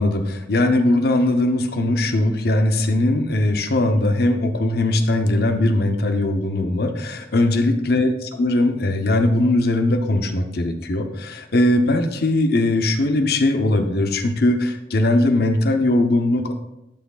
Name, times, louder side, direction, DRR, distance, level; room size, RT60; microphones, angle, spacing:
voice 1, 0.0-16.5, left 1 dB, 60° left, 6 dB, 0.8 m, -20 dB
12.0 x 5.9 x 2.4 m, 0.88 s
head